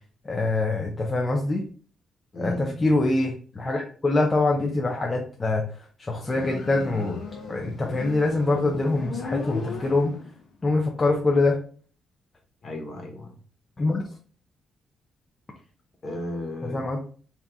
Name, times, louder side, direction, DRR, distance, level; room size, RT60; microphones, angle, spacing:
voice 1, 0.3-1.6 2.4-5.6 6.0-7.2 7.5-10.1 10.6-11.6 13.8-14.0 16.7-17.0, left 2 dB, 25° left, 0 dB, 0.6 m, -24 dB
voice 2, 2.3-2.9 12.6-13.4 16.0-16.9, left 1 dB, 40° left, 1 dB, 1.4 m, -34 dB
Motorcycle, 6.2-10.5, left 5 dB, 70° left, 1.2 m, -36 dB
3.7 x 2.8 x 3.4 m, 0.42 s
cardioid pair, 110°, 0 cm